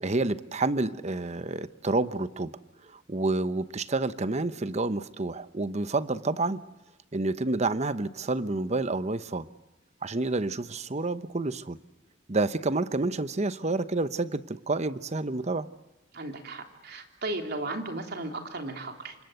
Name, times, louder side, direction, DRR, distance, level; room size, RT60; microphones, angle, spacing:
voice 1, 0.0-2.5 2.9-6.6 7.1-9.5 10.0-11.8 12.3-15.7, right 2 dB, 35° right, 0.9 m, -29 dB
voice 2, 16.1-19.1, right 2 dB, 55° right, 3.4 m, -35 dB
28.5 x 25.0 x 8.0 m
head